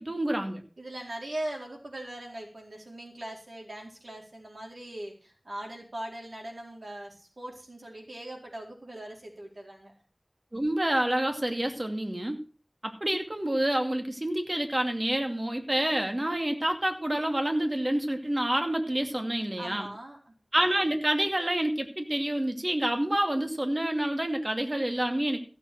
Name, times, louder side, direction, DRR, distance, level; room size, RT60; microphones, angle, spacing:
voice 1, 0.0-0.6 10.5-12.4 12.8-19.9 20.5-25.4, right 1 dB, 40° right, 4 dB, 2.4 m, -28 dB
voice 2, 0.8-9.9 19.6-20.3, right 1 dB, 85° right, 0 dB, 4.4 m, -40 dB
15.5 x 7.3 x 6.2 m, 0.37 s
wide cardioid pair, 40°, 0 cm